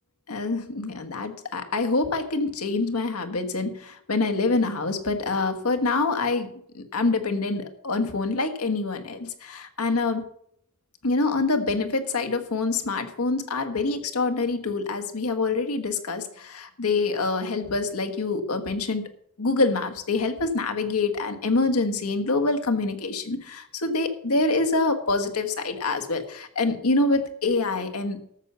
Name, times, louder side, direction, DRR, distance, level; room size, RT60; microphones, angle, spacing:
voice 1, 0.3-10.2 11.0-19.0 19.4-28.2, left 3 dB, 90° left, 7 dB, 1.5 m, -26 dB
13.0 x 6.8 x 6.8 m, 0.69 s
head